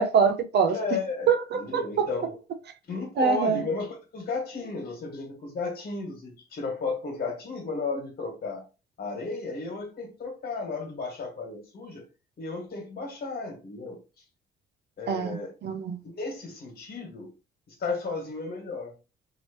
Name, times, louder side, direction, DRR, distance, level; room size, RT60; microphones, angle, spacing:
voice 1, 0.0-0.8 1.3-2.1 3.2-3.6 15.1-16.0, right 6 dB, 60° right, 0.5 m, -24 dB
voice 2, 0.7-1.3 1.5-2.3 2.9-8.6 9.0-12.0 12.4-14.0 15.0-15.5 16.0-17.3 17.7-18.9, left 4 dB, 50° left, 1.6 m, -34 dB
3.0 x 2.9 x 2.9 m
cardioid pair, 90°, 20 cm